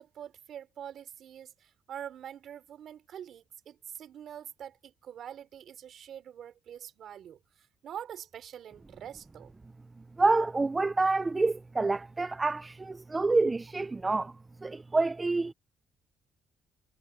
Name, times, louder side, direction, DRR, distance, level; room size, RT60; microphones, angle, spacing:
voice 1, 0.0-7.4 7.8-9.5, right 9 dB, 70° right, 3.4 m, -45 dB
voice 2, 10.2-14.3 14.6-15.5, right 3 dB, 20° right, 0.5 m, -27 dB
cardioid pair, 90°, 0 cm